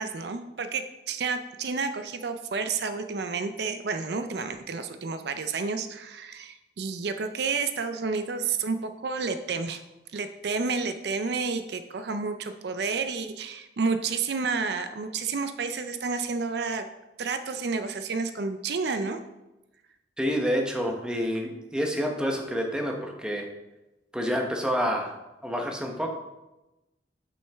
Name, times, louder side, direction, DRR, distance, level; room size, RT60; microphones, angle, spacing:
voice 1, 0.0-9.8 10.1-16.8 17.2-19.2, right 4 dB, 65° right, 9 dB, 0.5 m, -30 dB
voice 2, 20.2-23.5 24.1-25.2 25.4-26.1, equal, 5° right, 1 dB, 0.9 m, -28 dB
8.5 x 6.3 x 3.5 m, 0.99 s
head